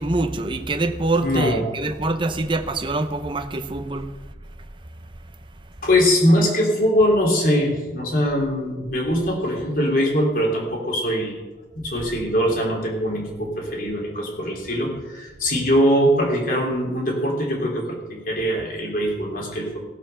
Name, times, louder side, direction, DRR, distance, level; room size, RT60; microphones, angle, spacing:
voice 1, 0.0-4.1, right 2 dB, 30° right, 0.7 m, -24 dB
voice 2, 1.2-1.6 5.8-11.4 11.7-19.8, equal, 50° left, 3.2 m, -22 dB
16.5 x 7.6 x 5.7 m
head